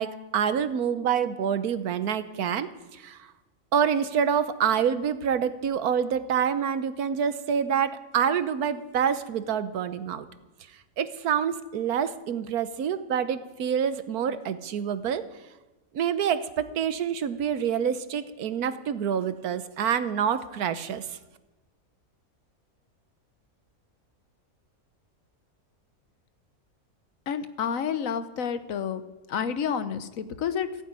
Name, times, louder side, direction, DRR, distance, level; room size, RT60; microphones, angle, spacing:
voice 1, 0.0-3.2 3.7-10.3 11.0-15.2 15.9-21.2, right 8 dB, 85° right, 12 dB, 1.4 m, -27 dB
voice 2, 27.3-29.0 29.3-30.8, left 7 dB, 65° left, 11 dB, 1.2 m, -29 dB
15.0 x 9.3 x 8.9 m, 1.1 s
omnidirectional pair, 1.5 m